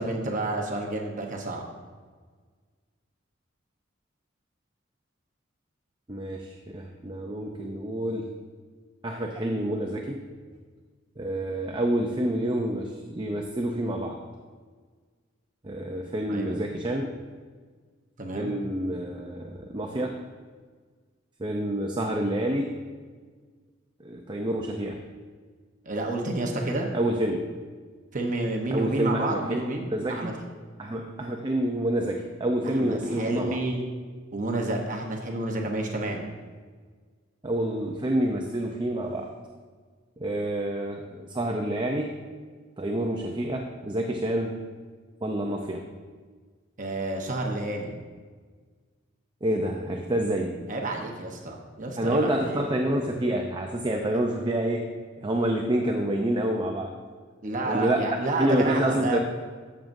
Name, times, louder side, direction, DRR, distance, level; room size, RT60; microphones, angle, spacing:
voice 1, 0.0-1.6 16.3-16.6 18.2-18.6 25.8-26.9 28.1-30.3 32.6-33.8 34.3-36.2 46.8-47.9 50.7-52.6 54.1-54.2 57.4-59.2, right 2 dB, 40° right, 1 dB, 1.0 m, -30 dB
voice 2, 6.1-8.3 9.0-10.2 11.2-14.2 15.6-17.1 18.3-20.1 21.4-22.7 24.0-25.0 26.9-27.4 28.7-29.6 29.9-30.3 30.8-33.6 37.4-39.3 40.2-42.1 42.8-44.6 45.2-45.9 49.4-50.6 52.0-54.9 55.2-56.9 57.7-58.1 58.4-59.2, right 1 dB, 25° right, 2 dB, 0.6 m, -28 dB
12.5 x 7.2 x 2.6 m, 1.5 s
head